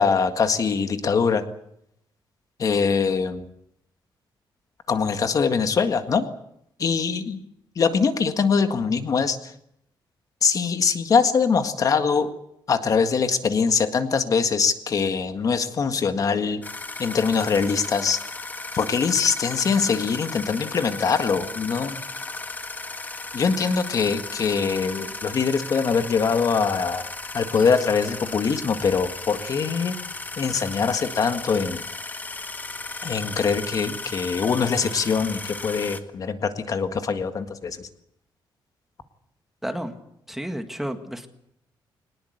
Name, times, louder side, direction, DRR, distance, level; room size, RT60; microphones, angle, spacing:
voice 1, 0.0-1.4 2.6-3.5 4.9-6.3 6.8-7.4 7.8-9.5 10.4-12.3 12.7-16.6 17.0-18.2 18.7-22.0 23.3-27.1 27.3-30.0 30.4-31.8 33.0-37.9, left 5 dB, 45° left, 8 dB, 1.8 m, -23 dB
sound 1, 16.6-36.0, left 3 dB, 20° left, 1.7 m, -35 dB
voice 2, 39.6-39.9 40.3-41.3, equal, 5° right, 7 dB, 1.9 m, -31 dB
22.5 x 20.0 x 8.1 m, 0.76 s
wide cardioid pair, 160°, 9 cm